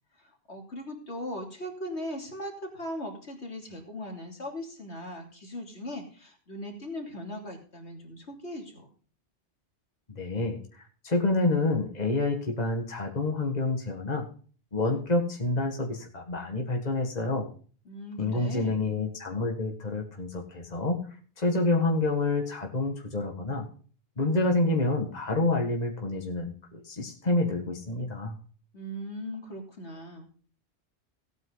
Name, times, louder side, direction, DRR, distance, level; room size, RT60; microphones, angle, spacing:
voice 1, 0.2-8.9 17.8-18.8 28.7-30.3, equal, 75° left, 2 dB, 3.3 m, -39 dB
voice 2, 10.2-14.2 14.7-17.5 18.2-21.0 21.4-23.7 24.2-28.3, left 2 dB, 35° left, 2 dB, 2.0 m, -28 dB
16.5 x 9.2 x 4.0 m, 0.41 s
omnidirectional pair, 1.2 m